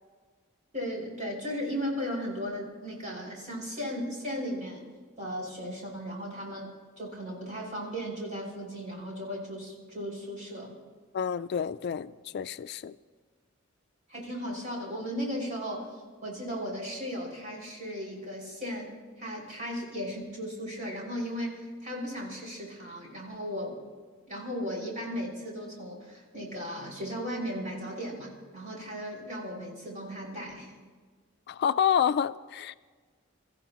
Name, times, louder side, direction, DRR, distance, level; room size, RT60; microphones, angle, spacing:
voice 1, 0.7-4.8 5.2-10.7 14.1-18.9 19.2-23.8 24.3-30.7, equal, 40° right, 5.7 m, -36 dB
voice 2, 11.1-12.9 31.5-32.7, left 8 dB, 55° left, 0.3 m, -28 dB
26.0 x 15.0 x 3.0 m
head